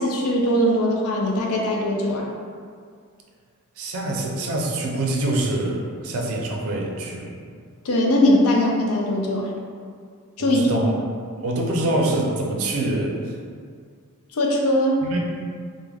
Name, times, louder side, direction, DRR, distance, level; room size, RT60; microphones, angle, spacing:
voice 1, 0.0-2.3 7.8-9.5 10.4-10.8 14.3-15.0, left 1 dB, 70° left, -1 dB, 0.4 m, -20 dB
voice 2, 3.8-7.4 10.4-11.0 11.4-13.3 15.0-15.2, right 1 dB, 65° right, 0 dB, 0.4 m, -25 dB
2.3 x 2.0 x 3.2 m, 2.1 s
head